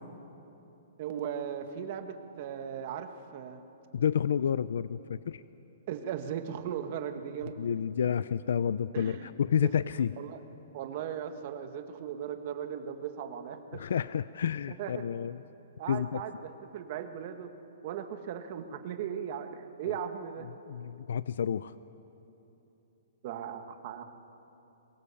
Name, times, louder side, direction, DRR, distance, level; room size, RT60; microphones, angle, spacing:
voice 1, 1.0-3.6 5.9-7.6 8.9-9.3 9.6-9.7 10.2-10.4 10.7-13.8 14.8-15.0 15.8-17.5 17.8-20.5 23.2-24.0, right 9 dB, 40° right, 7 dB, 1.5 m, -37 dB
voice 2, 3.9-5.4 7.6-10.1 13.7-15.4 15.9-16.2 19.8-20.0 20.7-21.7, left 8 dB, 70° left, 16 dB, 0.5 m, -30 dB
23.0 x 21.5 x 7.1 m, 3.0 s
hypercardioid pair, 165°, 0 cm